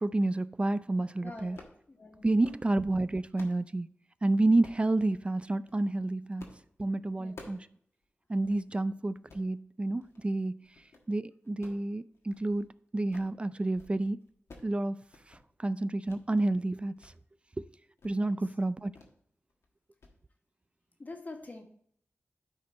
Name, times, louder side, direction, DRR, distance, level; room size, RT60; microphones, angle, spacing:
voice 1, 0.0-1.6 2.2-3.9 4.2-6.5 6.8-7.7 8.3-10.6 11.1-12.7 12.9-14.2 14.6-15.0 15.3-17.1 18.0-18.9, right 2 dB, 25° right, 0.3 m, -29 dB
voice 2, 1.2-2.3 7.2-7.4 18.2-18.4 21.0-21.6, left 2 dB, 40° left, 1.5 m, -46 dB
sound 1, 1.5-1.8 2.2-2.7 3.1-3.6 4.6-4.9 5.5-5.8 6.4-6.7 6.9-7.7 8.0-8.1 8.4-8.6 9.1-9.5 10.0-10.3 10.6-11.1 11.4-12.7 12.9-13.4 13.6-14.0 14.2-14.7 15.0-15.4 16.0-16.2 16.6-17.1 17.5-17.6 18.0-18.2 18.9-19.2 19.5-19.7 20.0-20.1, left 3 dB, 85° left, 1.3 m, -53 dB
11.5 x 4.4 x 4.1 m
wide cardioid pair, 80°, 4 cm